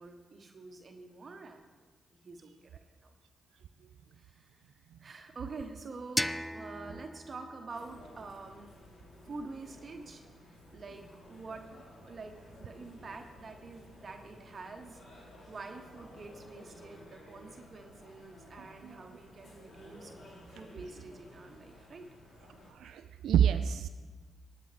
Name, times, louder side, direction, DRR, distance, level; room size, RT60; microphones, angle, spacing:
voice 1, 0.0-1.8 2.2-3.1 4.2-4.7 5.0-8.7 9.2-11.7 12.0-22.1, right 3 dB, 50° right, 4 dB, 1.2 m, -47 dB
sound 1, 6.2-9.0, equal, 5° left, 0.4 m, -38 dB
sound 2, 7.7-22.7, left 1 dB, 60° left, 3.3 m, -54 dB
voice 2, 22.7-23.9, right 9 dB, 75° right, 8 dB, 0.4 m, -28 dB
19.0 x 7.9 x 3.4 m, 1.4 s
supercardioid pair, 45°, 0 cm